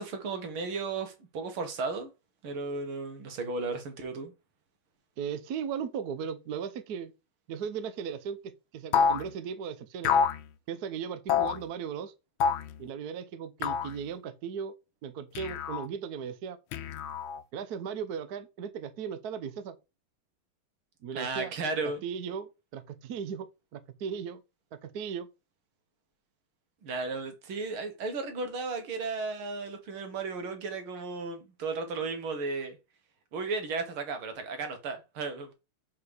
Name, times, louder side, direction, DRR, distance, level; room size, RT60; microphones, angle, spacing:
voice 1, 0.0-2.1 2.4-4.3 21.2-22.0 26.8-32.8 33.3-35.5, right 4 dB, 80° right, 2.2 m, -34 dB
voice 2, 5.2-7.1 7.5-10.1 10.7-12.1 12.8-14.7 15.0-16.6 17.5-19.8 21.0-21.5 21.8-24.4 24.7-25.3, right 7 dB, 60° right, 1.1 m, -37 dB
sound 1, 8.9-9.3 10.0-10.4 11.3-11.6 12.4-12.7 13.6-13.9 15.3-15.9 16.7-17.4, left 6 dB, 75° left, 1.5 m, -27 dB
5.2 x 4.8 x 6.3 m
omnidirectional pair, 2.3 m